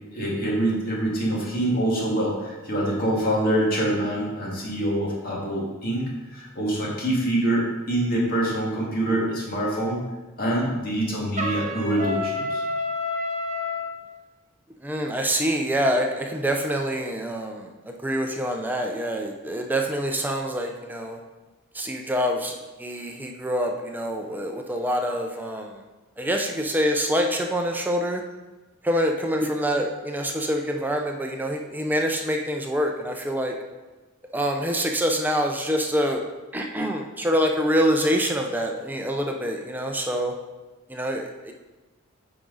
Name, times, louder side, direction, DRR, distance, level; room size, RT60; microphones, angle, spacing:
voice 1, 0.1-10.0 10.4-12.6, right 1 dB, 45° left, -4 dB, 2.0 m, -25 dB
Trumpet, 11.4-13.9, left 2 dB, 35° right, 0.8 m, -28 dB
voice 2, 14.8-21.2 21.7-22.5 22.8-25.7 26.2-28.2 28.8-33.5 34.3-36.2 36.5-40.3 40.9-41.5, equal, 10° right, 2 dB, 0.5 m, -26 dB
8.7 x 4.9 x 3.9 m, 1.2 s
head